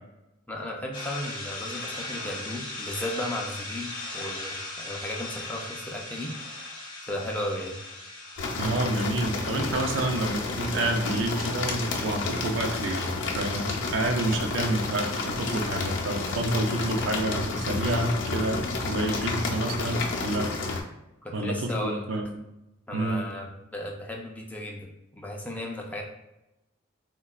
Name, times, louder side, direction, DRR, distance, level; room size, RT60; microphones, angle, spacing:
voice 1, 0.5-6.3 7.1-7.8 21.2-22.0 22.9-26.0, left 1 dB, 10° left, -1 dB, 0.4 m, -35 dB
sound 1, 0.9-14.3, left 2 dB, 25° left, 0.7 m, -40 dB
sound 2, 8.4-20.8, left 3 dB, 80° left, 0.5 m, -30 dB
voice 2, 8.6-20.8 21.3-22.4 22.9-23.3, right 2 dB, 80° right, 4 dB, 0.5 m, -29 dB
3.7 x 2.2 x 2.3 m, 0.93 s
head